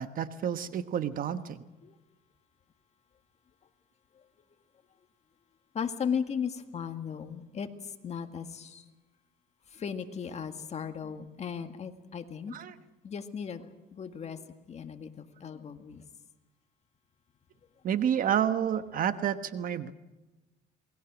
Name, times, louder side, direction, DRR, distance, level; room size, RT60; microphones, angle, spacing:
voice 1, 0.0-1.6 12.5-12.7 17.8-19.9, right 9 dB, 55° right, 11 dB, 1.2 m, -29 dB
voice 2, 5.7-8.9 9.7-12.5 13.0-14.4 14.7-16.0, left 7 dB, 40° left, 7 dB, 2.0 m, -36 dB
27.5 x 21.0 x 6.2 m, 1.1 s
cardioid pair, 110°, 17 cm